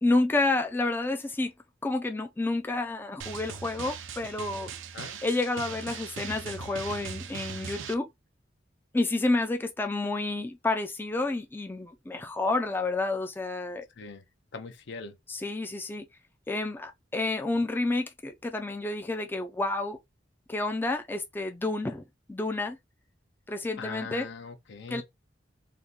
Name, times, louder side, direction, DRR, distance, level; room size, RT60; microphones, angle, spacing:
voice 1, 0.0-1.5 1.8-4.7 5.2-8.1 8.9-13.9 15.3-16.1 16.5-20.0 20.5-22.0 22.3-22.8 23.5-24.3 24.9-25.0, left 2 dB, 10° left, 0.3 m, -29 dB
Drum, 3.2-7.9, right 6 dB, 90° right, 0.5 m, -40 dB
voice 2, 14.5-15.2 23.8-25.0, left 4 dB, 65° left, 0.6 m, -41 dB
2.9 x 2.1 x 3.6 m
head